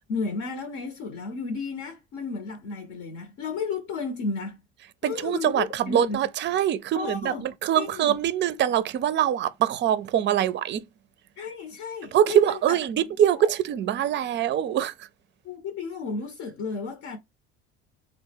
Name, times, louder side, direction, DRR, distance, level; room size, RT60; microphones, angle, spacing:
voice 1, 0.1-4.6 5.0-6.2 6.9-7.5 7.7-8.2 11.4-12.8 13.4-13.5 15.4-17.2, left 4 dB, 65° left, 0.8 m, -33 dB
voice 2, 5.0-10.8 12.1-15.1, right 10 dB, 35° right, 0.4 m, -24 dB
3.3 x 2.0 x 3.3 m
hypercardioid pair, 70°, 33 cm